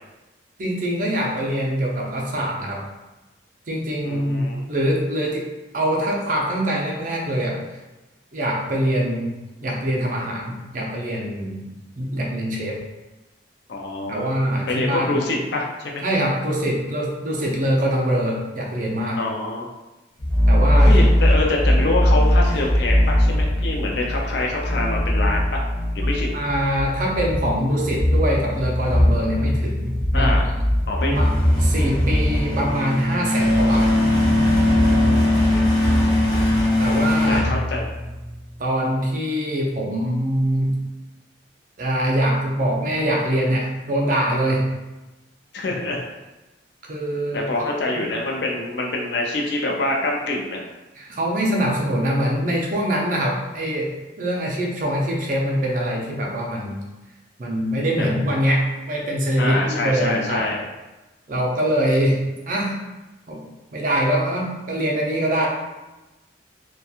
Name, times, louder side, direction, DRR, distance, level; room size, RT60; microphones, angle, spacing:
voice 1, 0.6-2.8 3.7-5.4 5.7-7.6 8.3-9.3 9.6-11.6 12.0-12.8 14.1-15.2 16.0-19.2 20.5-20.9 26.3-30.6 31.0-31.3 31.6-33.9 36.8-37.5 38.6-40.8 41.8-44.7 46.9-47.5 47.9-48.1 51.0-53.9 54.2-56.8 57.4-60.5 61.3-62.7 63.3-63.4 63.7-65.5, equal, 45° right, -2 dB, 0.5 m, -23 dB
voice 2, 4.0-4.6 13.7-14.3 14.7-16.0 19.2-19.7 20.7-25.6 25.9-26.4 30.1-30.5 30.9-31.2 34.8-35.6 36.1-36.2 37.3-37.9 45.5-46.0 47.3-50.6 58.0-58.1 59.4-60.6, left 2 dB, 65° left, -1 dB, 0.4 m, -25 dB
sound 1, 20.2-38.3, left 1 dB, 20° left, 0.7 m, -19 dB
2.8 x 2.2 x 2.3 m, 1.1 s
head